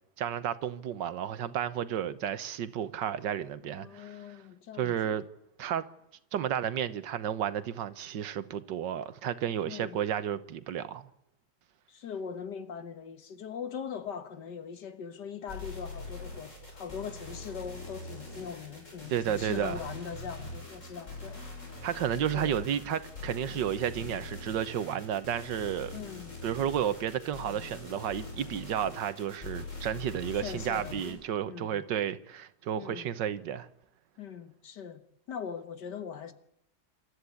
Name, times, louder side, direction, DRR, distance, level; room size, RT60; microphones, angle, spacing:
voice 1, 0.2-4.4 4.8-5.2 5.6-5.9 6.3-11.1 19.1-19.8 21.8-25.9 26.4-33.7, right 9 dB, 85° right, 1.7 m, -32 dB
voice 2, 3.6-5.2 9.6-10.0 11.9-21.5 22.3-22.5 25.9-26.3 30.3-31.2 31.5-31.8 32.8-33.1 34.2-35.0 35.3-36.3, left 7 dB, 75° left, 1.9 m, -41 dB
sound 1, 15.5-31.1, left 2 dB, 45° left, 6.2 m, -43 dB
28.0 x 13.5 x 8.4 m
omnidirectional pair, 1.9 m